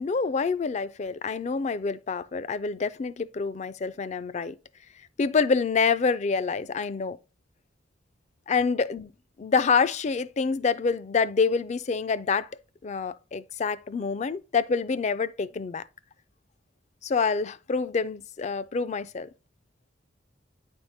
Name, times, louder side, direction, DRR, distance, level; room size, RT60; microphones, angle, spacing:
voice 1, 0.0-4.5 5.2-7.2 8.5-9.1 9.4-12.5 12.8-15.8 17.0-19.3, left 5 dB, 35° left, 0.4 m, -27 dB
9.5 x 3.6 x 4.0 m
head